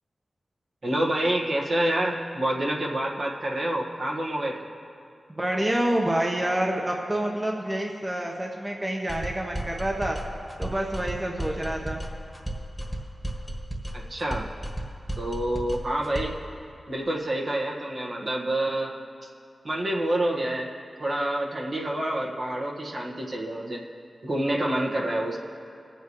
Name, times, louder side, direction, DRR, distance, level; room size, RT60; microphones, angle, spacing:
voice 1, 0.8-4.7 13.9-14.5 15.2-16.3 16.9-18.9 19.6-20.7 21.0-23.8 24.2-25.4, right 1 dB, 55° right, -2 dB, 1.6 m, -27 dB
voice 2, 5.3-10.2 10.6-12.0, right 1 dB, 25° right, 0 dB, 1.1 m, -27 dB
sound 1, 9.1-16.5, right 1 dB, ahead, 1.5 m, -34 dB
21.5 x 8.2 x 3.2 m, 2.4 s
cardioid pair, 60°, 0 cm